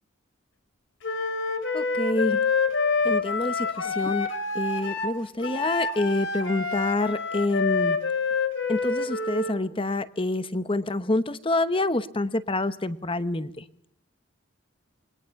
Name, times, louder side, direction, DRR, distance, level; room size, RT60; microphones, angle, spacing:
Wind instrument woodwind instrument, 1.0-9.6, left 4 dB, 60° left, 2.9 m, -27 dB
voice 1, 1.7-2.4 3.0-4.3 4.5-8.0 8.7-13.6, left 2 dB, 25° left, 13 dB, 1.0 m, -27 dB
27.0 x 22.0 x 5.9 m, 0.67 s
head